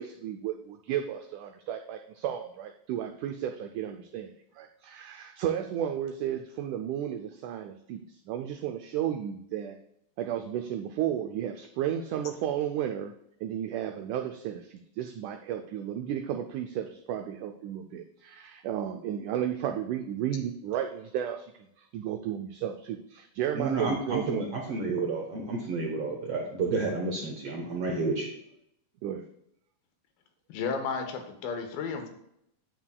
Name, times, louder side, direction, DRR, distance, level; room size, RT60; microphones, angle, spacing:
voice 1, 0.0-9.8 10.2-13.1 13.4-21.5 21.8-24.5 29.0-29.2, right 10 dB, 90° right, 5 dB, 1.7 m, -33 dB
voice 2, 23.5-28.3, right 3 dB, 70° right, 0 dB, 1.4 m, -30 dB
voice 3, 30.5-32.1, left 5 dB, 85° left, 5 dB, 2.8 m, -33 dB
9.2 x 8.7 x 2.3 m, 0.76 s
omnidirectional pair, 4.1 m